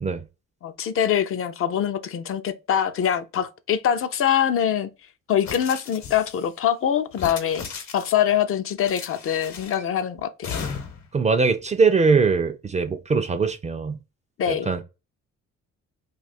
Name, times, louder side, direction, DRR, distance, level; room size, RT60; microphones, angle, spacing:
voice 1, 0.6-4.9 5.3-7.6 7.9-10.6 14.4-14.7, left 9 dB, 45° left, 0.4 m, -24 dB
sound 1, 5.4-6.5 7.1-8.3 8.8-9.9 10.4-11.1, left 6 dB, 65° left, 0.9 m, -35 dB
voice 2, 11.1-14.0 14.5-14.8, right 4 dB, 25° right, 0.3 m, -21 dB
2.5 x 2.3 x 4.1 m
cardioid pair, 90°, 30 cm